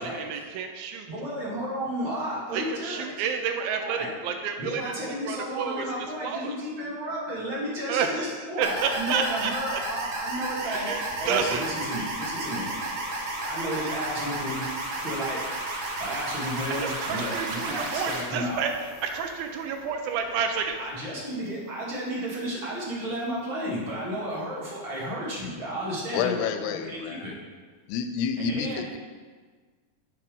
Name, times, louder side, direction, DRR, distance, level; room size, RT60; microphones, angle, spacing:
voice 1, 0.0-1.1 2.5-5.9 6.2-6.6 7.9-8.3 8.6-9.8 10.6-11.6 16.8-18.7 19.0-20.7, right 6 dB, 80° right, 5 dB, 2.3 m, -30 dB
voice 2, 1.1-3.0 3.6-4.2 4.6-12.7 13.5-14.6 15.0-15.4 16.0-18.7 20.8-27.4 28.4-28.8, equal, 40° right, -5 dB, 2.1 m, -33 dB
sound 1, 8.6-18.2, right 2 dB, 60° right, 2.3 m, -32 dB
sound 2, 11.0-24.0 24.4-24.5 27.0-27.4, left 2 dB, 60° left, 2.3 m, -51 dB
voice 3, 26.1-27.3 27.9-29.0, left 7 dB, 90° left, 7 dB, 2.6 m, -29 dB
8.2 x 5.9 x 5.2 m, 1.5 s
omnidirectional pair, 4.5 m